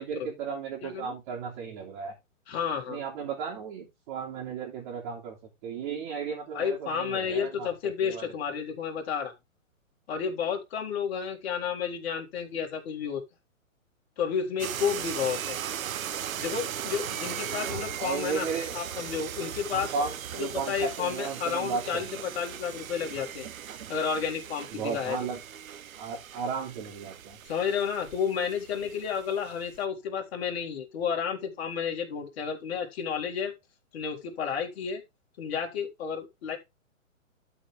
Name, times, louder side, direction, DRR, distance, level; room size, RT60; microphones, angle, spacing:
voice 1, 0.0-2.1 2.9-5.4 5.6-7.7 8.0-8.3 17.6-18.7 19.7-22.2 24.7-25.4 26.0-27.4, right 6 dB, 35° right, 3.0 m, -35 dB
voice 2, 0.8-1.1 2.5-3.0 6.5-9.3 10.1-13.2 14.2-15.6 16.4-18.5 18.7-19.9 20.4-23.5 23.9-25.2 27.4-33.5 33.9-35.0 35.4-36.6, left 7 dB, 45° left, 3.5 m, -31 dB
sound 1, 14.6-29.8, right 9 dB, 80° right, 0.9 m, -38 dB
12.5 x 5.1 x 3.7 m
hypercardioid pair, 145°, 41 cm